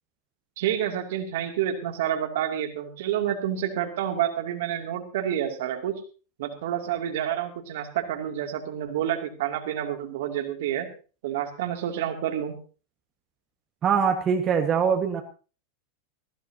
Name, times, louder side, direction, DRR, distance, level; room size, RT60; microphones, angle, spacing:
voice 1, 0.6-6.0 6.4-10.9 11.2-12.6, right 10 dB, 65° right, 4 dB, 2.7 m, -29 dB
voice 2, 13.8-15.2, right 7 dB, 30° right, 4 dB, 1.6 m, -23 dB
19.5 x 14.5 x 2.9 m, 0.36 s
figure-of-eight pair, 90°, 0 cm